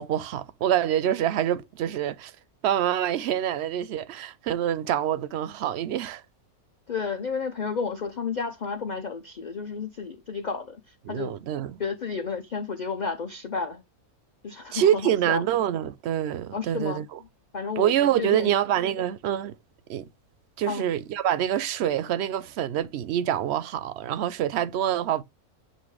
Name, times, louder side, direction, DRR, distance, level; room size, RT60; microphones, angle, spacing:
voice 1, 0.0-2.3 2.6-6.2 11.1-11.8 14.7-17.2 17.8-19.6 19.9-20.1 20.6-25.2, right 10 dB, 65° right, 0.7 m, -26 dB
voice 2, 6.9-11.4 11.8-13.8 14.4-15.4 16.5-17.0 17.5-17.9 18.2-18.5 20.6-20.9, left 5 dB, 50° left, 0.5 m, -32 dB
7.9 x 2.7 x 4.7 m
omnidirectional pair, 1.6 m